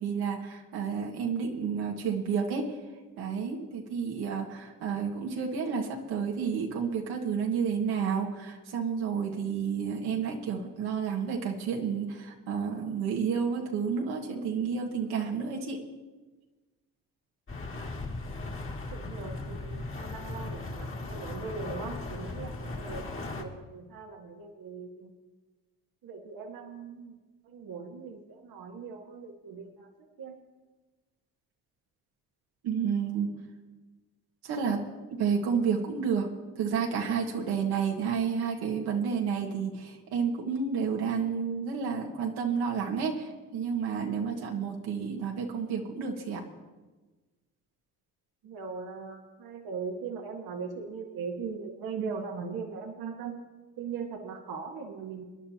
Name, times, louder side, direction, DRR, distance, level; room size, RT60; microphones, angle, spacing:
voice 1, 0.0-2.8 3.2-15.8 32.6-33.3 34.4-34.8 35.1-36.3 36.6-46.4, right 6 dB, 85° right, 0 dB, 1.9 m, -30 dB
sound 1, 17.5-23.4, left 2 dB, 35° left, 2.4 m, -37 dB
voice 2, 18.9-23.0 23.3-25.1 26.0-27.1 27.5-29.9 30.2-30.3 48.4-53.3 53.8-55.2, right 5 dB, 65° right, 2 dB, 1.7 m, -39 dB
26.5 x 10.5 x 2.9 m, 1.3 s
supercardioid pair, 75°, 38 cm